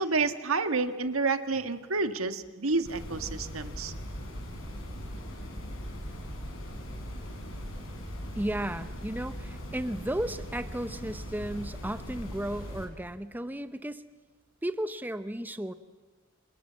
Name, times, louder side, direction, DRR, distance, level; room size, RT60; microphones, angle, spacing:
voice 1, 0.0-3.9, right 3 dB, 90° right, 9 dB, 1.7 m, -29 dB
sound 1, 2.8-12.9, equal, 70° left, 5.7 m, -40 dB
voice 2, 8.4-14.0 14.6-15.7, right 1 dB, 10° right, 11 dB, 0.8 m, -34 dB
29.0 x 27.0 x 7.5 m, 1.3 s
head